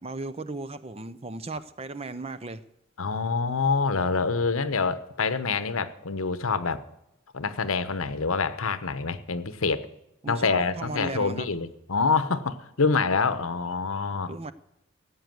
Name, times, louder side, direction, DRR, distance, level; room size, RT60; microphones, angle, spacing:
voice 1, 0.0-2.6 10.2-11.5 14.3-14.5, right 3 dB, 30° right, 13 dB, 0.6 m, -36 dB
voice 2, 3.0-6.8 7.3-9.9 10.3-14.3, left 4 dB, 90° left, 13 dB, 1.0 m, -26 dB
17.5 x 8.2 x 7.8 m, 0.87 s
head